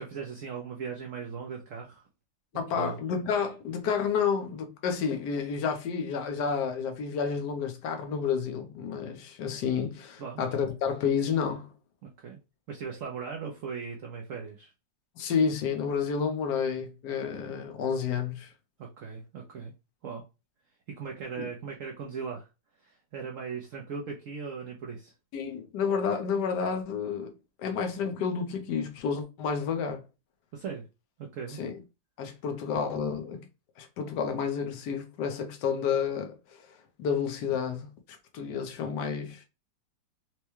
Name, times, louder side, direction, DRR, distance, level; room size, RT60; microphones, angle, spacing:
voice 1, 0.0-2.0 2.8-3.1 10.2-10.4 12.0-12.4 12.7-14.7 18.8-19.7 20.0-20.2 21.0-22.5 22.8-25.1 30.5-30.8 31.2-31.6, right 6 dB, 65° right, 0.8 m, -38 dB
voice 2, 2.5-11.7 15.2-18.5 21.4-21.5 25.3-30.0 31.6-31.7 32.2-33.5 33.8-36.7 37.0-37.9 38.3-39.4, left 6 dB, 70° left, 1.3 m, -30 dB
4.5 x 2.2 x 3.0 m
omnidirectional pair, 2.0 m